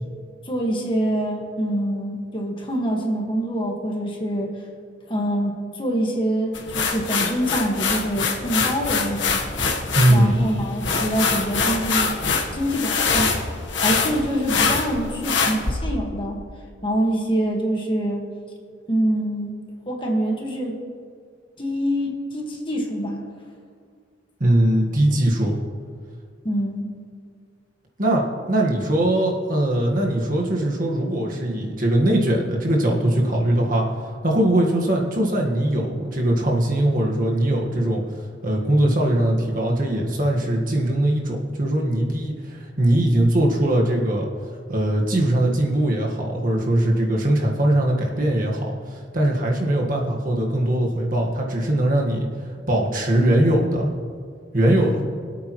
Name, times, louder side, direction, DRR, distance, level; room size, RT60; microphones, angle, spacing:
voice 1, 0.5-4.5 5.1-9.4 10.1-12.2 12.5-13.4 13.8-16.4 16.8-18.2 18.9-19.6 19.9-20.8 21.6-23.2 26.4-26.9, right 1 dB, 25° left, 0 dB, 1.7 m, -25 dB
sound 1, 6.5-15.7, left 5 dB, 80° left, 1.4 m, -24 dB
voice 2, 9.9-10.4 24.4-25.6 28.0-33.8 34.2-38.0 38.4-44.3 44.7-52.3 52.7-53.9 54.5-55.0, right 1 dB, 45° right, -1 dB, 1.6 m, -21 dB
24.5 x 8.6 x 3.2 m, 2.1 s
head